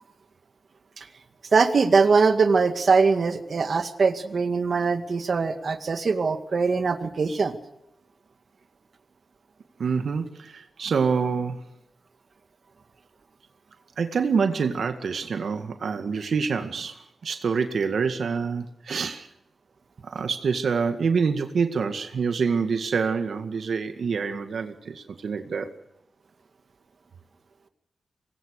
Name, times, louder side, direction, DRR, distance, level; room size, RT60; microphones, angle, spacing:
voice 1, 1.5-7.6, right 4 dB, 50° right, 7 dB, 2.0 m, -22 dB
voice 2, 9.8-11.6 14.0-19.3 20.0-25.7, right 5 dB, 70° right, 7 dB, 2.0 m, -26 dB
25.5 x 20.5 x 6.7 m, 0.86 s
wide cardioid pair, 125°, 0 cm